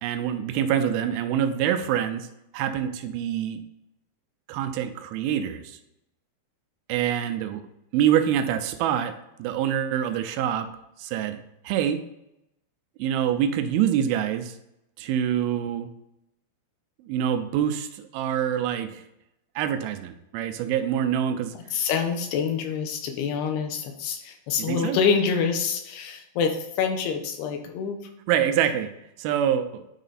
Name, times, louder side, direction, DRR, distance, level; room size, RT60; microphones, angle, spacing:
voice 1, 0.0-2.3 2.5-3.6 4.5-5.8 6.9-7.6 7.9-10.7 11.0-11.4 11.6-12.0 13.0-14.5 15.0-15.9 17.1-19.0 19.6-21.6 24.6-25.0 28.3-28.9 29.2-29.8, right 9 dB, 80° right, 8 dB, 2.3 m, -25 dB
voice 2, 21.7-28.0, left 6 dB, 80° left, 5 dB, 3.0 m, -26 dB
9.1 x 3.9 x 4.1 m, 0.85 s
omnidirectional pair, 4.7 m